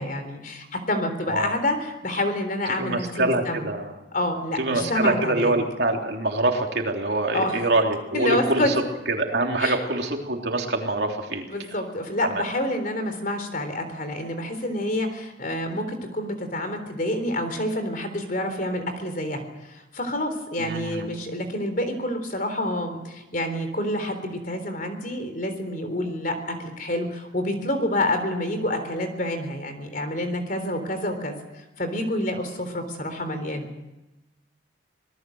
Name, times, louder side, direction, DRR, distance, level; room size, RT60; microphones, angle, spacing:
voice 1, 0.0-3.7 4.1-5.5 7.3-7.6 8.1-8.7 9.6-9.8 11.5-33.7, left 1 dB, 45° left, 8 dB, 3.6 m, -28 dB
voice 2, 2.8-3.9 4.6-8.6 9.2-11.4 12.3-12.4 20.6-21.1, right 2 dB, 55° right, 2 dB, 3.3 m, -25 dB
26.0 x 19.0 x 7.9 m, 0.99 s
head